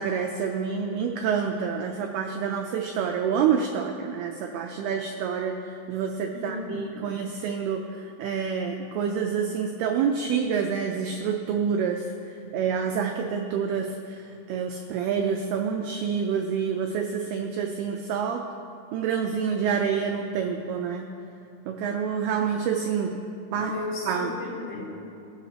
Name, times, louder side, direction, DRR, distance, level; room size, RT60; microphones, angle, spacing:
voice 1, 0.0-12.1 12.5-14.2 14.5-18.4 18.9-21.1 21.7-23.2 23.5-23.7 24.1-24.3, right 7 dB, 85° right, 3 dB, 2.2 m, -27 dB
voice 2, 6.3-7.1 23.6-24.9, left 2 dB, 75° left, -6 dB, 5.0 m, -34 dB
20.5 x 10.0 x 2.9 m, 2.6 s
omnidirectional pair, 5.3 m